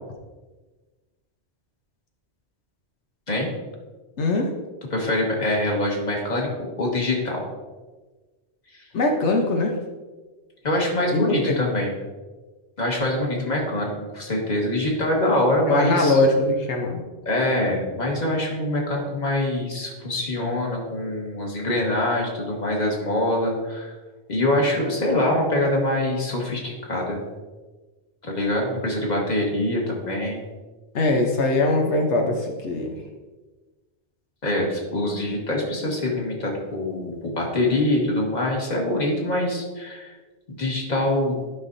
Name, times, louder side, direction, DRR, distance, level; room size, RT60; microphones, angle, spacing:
voice 1, 4.2-4.5 8.9-9.8 11.1-11.6 15.7-17.0 30.9-32.9, left 2 dB, 90° left, 2 dB, 1.2 m, -21 dB
voice 2, 4.9-6.5 6.8-7.4 10.6-11.9 12.8-16.2 17.2-23.9 24.3-27.2 28.2-30.4 34.4-40.1 40.5-41.4, left 1 dB, 40° left, -1 dB, 1.7 m, -24 dB
12.0 x 5.8 x 2.7 m, 1.3 s
omnidirectional pair, 1.1 m